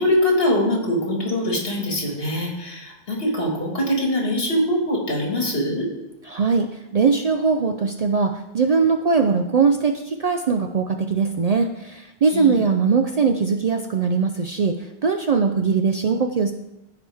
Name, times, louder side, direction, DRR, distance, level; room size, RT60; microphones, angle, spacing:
voice 1, 0.0-5.9 12.3-12.6, left 1 dB, 70° left, 0 dB, 2.1 m, -23 dB
voice 2, 6.3-16.5, right 5 dB, 55° right, 6 dB, 0.5 m, -21 dB
14.0 x 4.9 x 3.5 m, 0.94 s
omnidirectional pair, 1.0 m